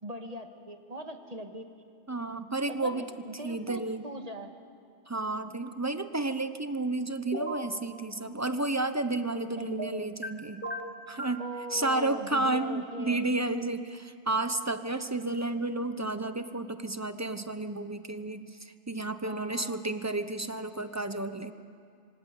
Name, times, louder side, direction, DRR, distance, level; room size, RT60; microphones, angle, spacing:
voice 1, 0.0-1.6 2.7-4.5 9.6-9.7 11.4-13.2 19.2-19.8, equal, 35° right, 5 dB, 1.9 m, -40 dB
voice 2, 2.1-3.1 3.4-4.0 5.1-10.6 11.1-11.4 11.7-21.5, right 2 dB, 15° right, 10 dB, 0.9 m, -31 dB
sound 1, 7.3-7.7 9.7-10.3 10.6-11.4, right 1 dB, 10° left, 2.1 m, -35 dB
27.0 x 25.0 x 8.4 m, 2.3 s
omnidirectional pair, 1.2 m